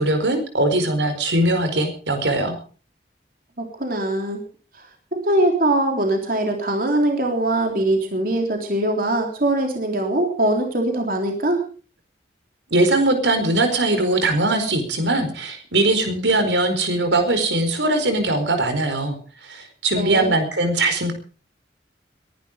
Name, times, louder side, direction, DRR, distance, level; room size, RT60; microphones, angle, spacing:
voice 1, 0.0-2.5 12.7-19.2 19.4-21.1, right 2 dB, 85° right, 7 dB, 4.4 m, -20 dB
voice 2, 3.6-4.4 4.8-11.6 20.0-20.3, right 1 dB, 50° right, 3 dB, 3.4 m, -22 dB
22.0 x 11.5 x 5.1 m, 0.39 s
head